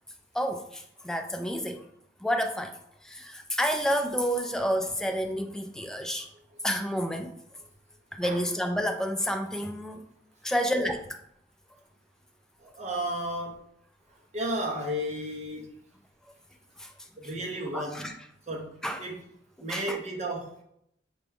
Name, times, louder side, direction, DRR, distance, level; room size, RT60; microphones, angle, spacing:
voice 1, 0.3-1.9 2.2-2.7 3.0-6.3 6.6-7.4 8.1-10.0 10.4-11.0 16.8-16.9 17.7-18.1 18.8-19.0 19.6-20.0, equal, 5° left, 4 dB, 0.3 m, -29 dB
voice 2, 12.6-13.6 14.3-15.7 17.2-18.0 18.5-18.7 19.0-19.2 19.6-20.5, right 1 dB, 40° right, -1 dB, 0.9 m, -33 dB
5.9 x 2.2 x 3.4 m, 0.73 s
head